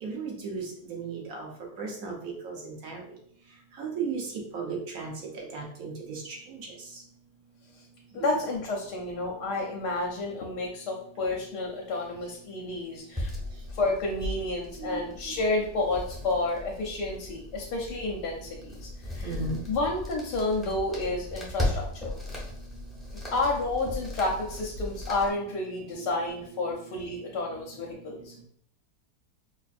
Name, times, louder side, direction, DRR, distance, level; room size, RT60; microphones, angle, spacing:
voice 1, 0.0-1.5 1.8-2.1 2.4-3.0 3.8-4.3 4.5-6.4 8.2-8.3 14.8-15.3 19.2-19.6 25.9-26.3, right 4 dB, 60° right, 0 dB, 1.1 m, -35 dB
voice 2, 8.1-13.4 13.7-19.4 19.7-22.1 23.3-28.4, left 2 dB, 75° left, -1 dB, 1.2 m, -30 dB
sound 1, 13.2-25.3, left 1 dB, ahead, 0.5 m, -37 dB
4.8 x 2.5 x 2.4 m, 0.65 s
omnidirectional pair, 1.8 m